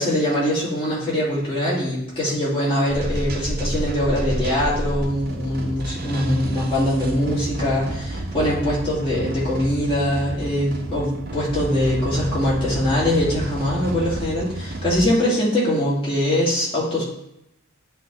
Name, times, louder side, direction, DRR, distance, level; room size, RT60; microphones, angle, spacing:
voice 1, 0.0-17.0, left 1 dB, 25° left, -8 dB, 2.8 m, -22 dB
sound 1, 2.9-15.1, right 1 dB, 45° right, 0.8 m, -30 dB
9.9 x 3.7 x 3.8 m, 0.82 s
head